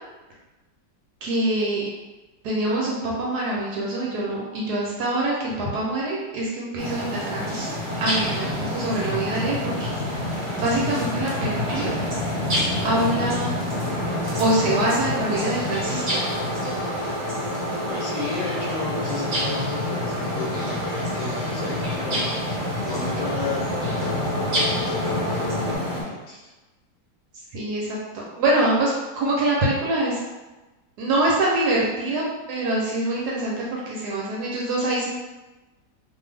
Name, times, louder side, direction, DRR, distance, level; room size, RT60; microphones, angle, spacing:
voice 1, 1.2-1.9 2.4-11.9 12.8-13.5 14.4-16.2 27.5-30.2 31.0-32.2 32.5-35.1, right 1 dB, 70° right, -4 dB, 1.1 m, -25 dB
sound 1, 6.8-26.0, left 1 dB, 50° right, 0.6 m, -28 dB
sound 2, 13.7-25.8, left 1 dB, 35° left, 0.5 m, -32 dB
voice 2, 17.9-22.3 22.8-26.5, left 3 dB, 90° left, -4 dB, 1.3 m, -33 dB
2.6 x 2.5 x 3.2 m, 1.1 s
omnidirectional pair, 1.9 m